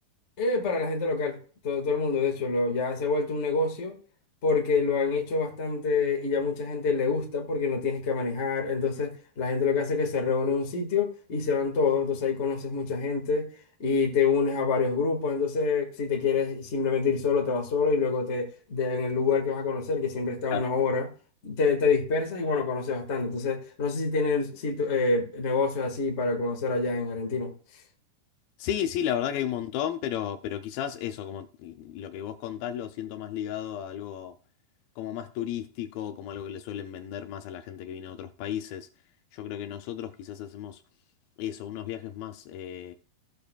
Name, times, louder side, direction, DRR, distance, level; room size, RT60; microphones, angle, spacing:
voice 1, 0.4-1.4 1.6-3.9 4.4-13.5 13.8-21.1 21.4-27.5, left 4 dB, 60° left, 0.7 m, -27 dB
voice 2, 28.6-34.4 35.0-38.9 39.3-40.8 41.4-42.9, left 10 dB, 80° left, 2.2 m, -34 dB
16.0 x 6.8 x 2.4 m
omnidirectional pair, 4.6 m